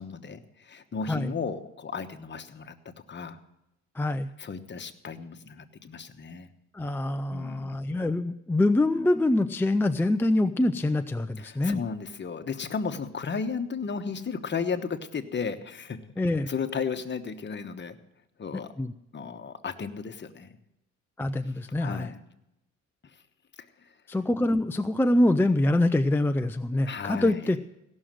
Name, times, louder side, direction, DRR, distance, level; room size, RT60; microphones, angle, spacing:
voice 1, 0.0-2.7 3.1-3.4 4.4-6.5 7.3-7.8 11.4-16.0 16.5-18.0 18.4-18.7 19.1-20.5 21.8-22.2 23.6-23.9 26.8-27.5, left 5 dB, 35° left, 8 dB, 1.2 m, -34 dB
voice 2, 4.0-4.3 6.7-11.8 16.2-16.5 18.8-18.9 21.2-22.1 24.1-27.6, left 1 dB, 5° left, 8 dB, 0.4 m, -25 dB
16.5 x 6.4 x 7.6 m, 0.88 s
cardioid pair, 90°, 30 cm